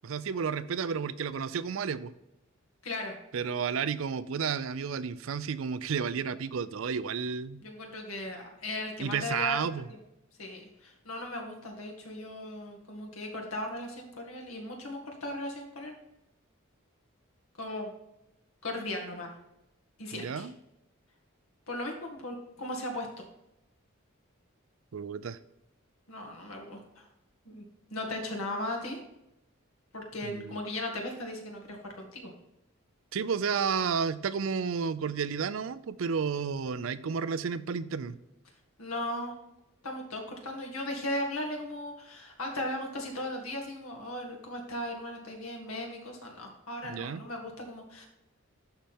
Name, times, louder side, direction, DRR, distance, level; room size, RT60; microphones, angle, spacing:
voice 1, 0.0-2.1 3.3-7.6 9.0-9.9 20.1-20.5 24.9-25.4 30.2-30.6 33.1-38.2 46.9-47.2, right 6 dB, 70° right, 15 dB, 0.4 m, -32 dB
voice 2, 2.8-3.1 7.6-9.6 9.9-10.0 10.4-15.9 17.6-17.9 18.6-19.3 20.0-20.5 21.7-23.1 26.1-27.1 27.5-27.6 27.9-29.0 29.9-32.3 38.8-39.4 39.8-48.1, left 1 dB, 85° left, 2 dB, 2.0 m, -37 dB
11.5 x 4.3 x 3.6 m, 0.88 s
head